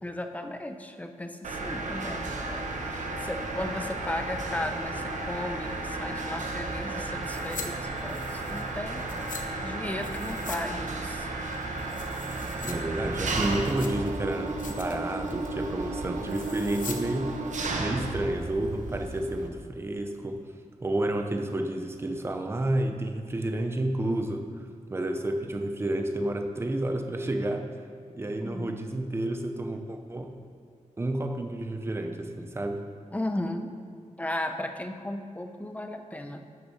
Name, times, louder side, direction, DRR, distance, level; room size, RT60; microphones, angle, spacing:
voice 1, 0.0-7.7 8.0-11.3 28.4-28.7 33.1-33.7 34.2-36.4, left 1 dB, 10° left, 6 dB, 0.7 m, -36 dB
Mechanisms, 1.4-19.5, right 2 dB, 70° right, 1.2 m, -33 dB
sound 1, 7.2-7.7 8.0-9.4 10.0-10.6 10.9-11.0 11.5-12.7 13.1-14.1 14.5-15.0 15.3-15.6 16.3-17.0 17.3-17.4, left 5 dB, 85° left, 1.0 m, -42 dB
voice 2, 12.6-17.3 17.8-20.4 20.8-27.7 28.1-30.3 31.0-32.8, right 1 dB, 20° right, 4 dB, 0.8 m, -30 dB
11.0 x 6.7 x 6.5 m, 2.3 s
wide cardioid pair, 170°, 13 cm